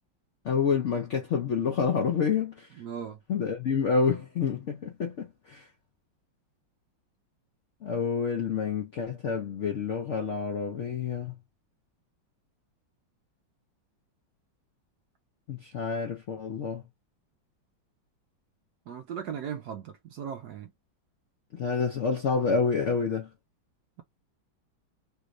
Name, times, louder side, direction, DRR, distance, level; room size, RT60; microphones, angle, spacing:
voice 1, 0.4-2.7 3.3-5.6 7.8-11.3 15.5-16.8 21.6-23.3, left 5 dB, 80° left, 0.6 m, -28 dB
voice 2, 2.8-3.2 18.9-20.7, right 8 dB, 75° right, 0.9 m, -37 dB
3.4 x 2.5 x 3.0 m
omnidirectional pair, 2.2 m